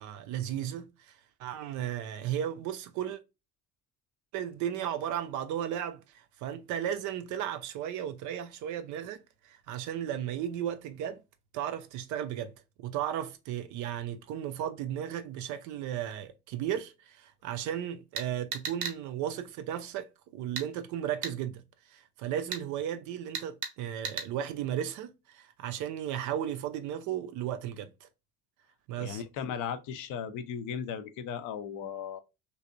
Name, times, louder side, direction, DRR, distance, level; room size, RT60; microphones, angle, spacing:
voice 1, 0.0-1.1 1.4-3.2 4.3-11.2 11.5-21.6 21.9-28.1 28.9-29.2, right 10 dB, 45° right, 0.5 m, -35 dB
sound 1, 18.2-19.0 20.6-20.7 21.2-21.3 22.5-22.6 23.3-23.7 24.0-24.3, right 6 dB, 80° right, 0.7 m, -35 dB
voice 2, 29.0-32.2, left 7 dB, 45° left, 0.5 m, -36 dB
3.3 x 2.8 x 2.5 m
figure-of-eight pair, 50°, 45 cm